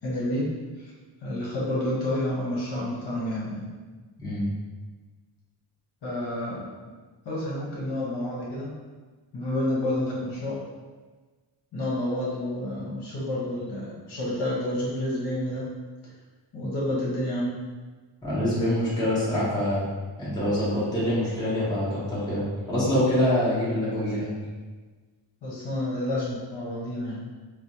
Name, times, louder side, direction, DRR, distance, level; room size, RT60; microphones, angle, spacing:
voice 1, 0.0-0.5 0.8-0.9 1.2-3.7 6.0-6.7 7.2-8.7 9.3-10.6 11.7-15.7 16.5-17.6 25.4-27.2, left 1 dB, 55° left, -6 dB, 1.0 m, -29 dB
voice 2, 18.2-19.8 20.2-24.3, left 1 dB, 10° left, -11 dB, 1.0 m, -25 dB
3.0 x 2.0 x 4.0 m, 1.3 s
wide cardioid pair, 175°, 49 cm